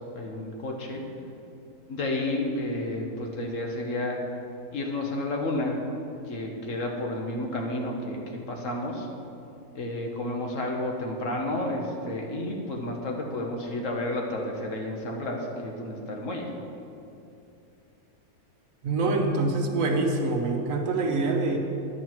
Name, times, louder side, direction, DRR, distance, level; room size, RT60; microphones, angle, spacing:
voice 1, 0.1-1.0 1.9-4.2 4.7-5.8 6.2-8.2 8.5-9.1 9.7-16.5, left 1 dB, 60° left, 1 dB, 1.3 m, -31 dB
voice 2, 18.8-21.6, right 3 dB, 65° right, 2 dB, 1.2 m, -25 dB
9.9 x 4.5 x 7.4 m, 2.7 s
omnidirectional pair, 1.6 m